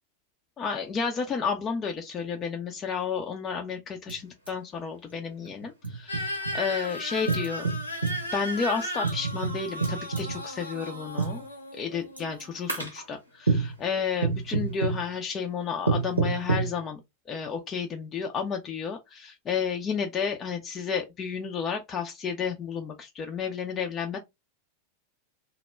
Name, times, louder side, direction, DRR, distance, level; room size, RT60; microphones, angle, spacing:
voice 1, 0.6-7.8 8.3-11.5 11.7-17.0 17.3-24.2, left 6 dB, 25° left, 0.4 m, -31 dB
sound 1, 4.1-4.2 4.5-4.6 5.4-6.6 7.3-8.2 9.0-10.4 11.2-11.4 12.2-12.4 12.7-13.0 13.5-13.8 14.2-15.0 15.9-16.7, right 4 dB, 85° right, 0.7 m, -27 dB
sound 2, 6.1-12.8, equal, 90° left, 0.8 m, -36 dB
2.1 x 2.0 x 3.3 m
figure-of-eight pair, 90°, 0 cm